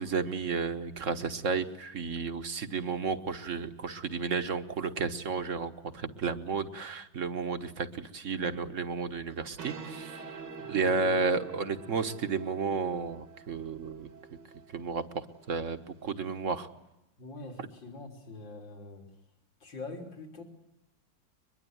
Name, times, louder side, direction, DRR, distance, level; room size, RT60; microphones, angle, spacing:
voice 1, 0.0-10.2 10.7-14.1 14.7-16.7, right 5 dB, 45° right, 10 dB, 1.5 m, -32 dB
sound 1, 9.3-16.5, right 5 dB, 70° right, 2.5 m, -47 dB
voice 2, 10.6-11.2 17.2-19.1 19.6-20.4, left 3 dB, 75° left, 3 dB, 4.3 m, -44 dB
23.0 x 22.0 x 9.4 m, 0.90 s
omnidirectional pair, 2.0 m